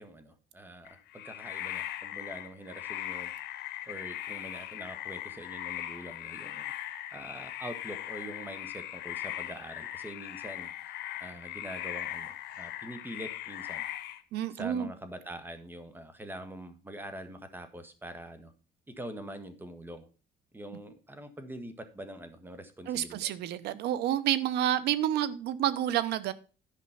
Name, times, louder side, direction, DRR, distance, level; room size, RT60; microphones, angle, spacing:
voice 1, 0.0-3.3 3.9-10.7 11.2-13.8 14.5-18.5 18.9-20.1 20.5-23.3, right 1 dB, 10° right, 1.5 m, -44 dB
sound 1, 0.8-14.2, left 13 dB, 75° left, 1.1 m, -39 dB
voice 2, 14.3-14.9 22.9-26.3, right 11 dB, 80° right, 0.9 m, -29 dB
11.0 x 5.2 x 5.7 m
cardioid pair, 110°, 17 cm